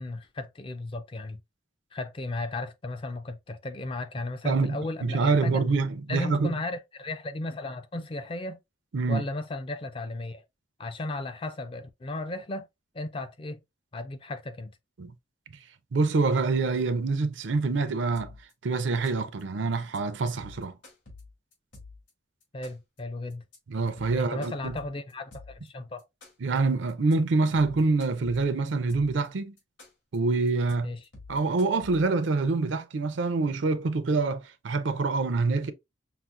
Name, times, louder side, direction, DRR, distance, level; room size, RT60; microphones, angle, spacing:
voice 1, 0.0-1.4 1.9-5.6 6.1-8.6 9.1-10.4 10.8-12.7 12.9-13.6 13.9-14.7 22.5-23.4 24.1-26.0 30.8-31.0, left 2 dB, 25° left, 0.4 m, -35 dB
voice 2, 4.4-6.5 8.9-9.2 15.0-15.1 15.9-18.3 18.6-20.8 23.7-24.8 26.4-29.5 30.1-30.9 31.3-35.7, right 3 dB, 70° right, 0.5 m, -26 dB
sound 1, 18.1-18.5 18.8-19.4 19.7-20.0 20.3-22.1 22.4-23.0 23.3-23.6 23.9-25.7 26.0-26.6 26.9-27.1 27.4-29.3 29.6-30.2 30.5-30.7 31.0-32.3, left 3 dB, 75° left, 1.9 m, -48 dB
5.8 x 2.1 x 2.4 m
head